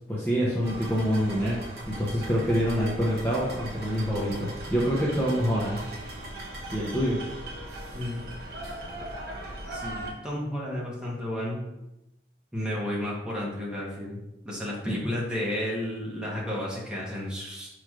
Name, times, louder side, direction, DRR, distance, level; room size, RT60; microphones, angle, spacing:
voice 1, 0.1-1.6 1.9-5.8 6.7-7.2 14.9-15.0, equal, 10° left, -7 dB, 0.6 m, -26 dB
sound 1, 0.6-10.1, right 1 dB, 55° right, 0.9 m, -38 dB
voice 2, 7.9-11.6 12.5-14.2 14.4-17.7, left 1 dB, 5° right, -6 dB, 1.0 m, -33 dB
5.8 x 3.1 x 2.4 m, 0.92 s
head